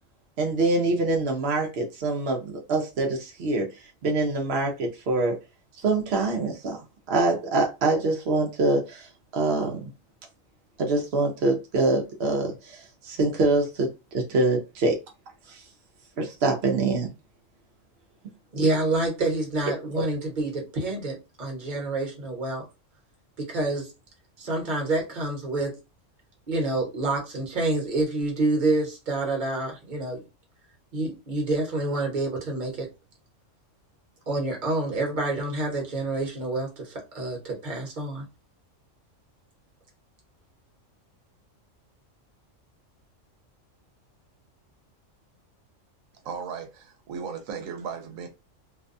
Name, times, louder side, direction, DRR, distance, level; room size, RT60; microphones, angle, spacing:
voice 1, 0.4-3.7 4.0-5.3 5.8-6.8 7.1-9.1 9.3-9.8 10.8-15.0 15.5-15.6 16.2-17.1 20.0-20.1, right 2 dB, 60° right, 0.8 m, -25 dB
voice 2, 18.5-22.6 23.4-23.9 24.4-25.7 26.5-30.2 30.9-32.9 34.3-38.2, right 2 dB, 40° right, 1.1 m, -27 dB
voice 3, 46.2-48.3, right 6 dB, 85° right, 1.0 m, -36 dB
2.6 x 2.2 x 2.5 m
omnidirectional pair, 1.3 m